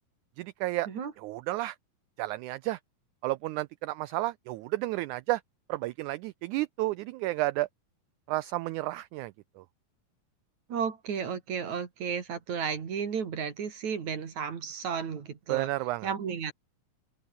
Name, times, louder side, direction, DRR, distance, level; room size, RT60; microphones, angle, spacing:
voice 1, 0.4-0.9 1.2-1.8 2.2-2.8 3.2-5.4 5.7-7.7 8.3-9.6 15.5-16.1, right 18 dB, 90° right, 1.7 m, -32 dB
voice 2, 10.7-15.7 16.0-16.5, right 6 dB, 55° right, 4.0 m, -33 dB
omnidirectional pair, 4.1 m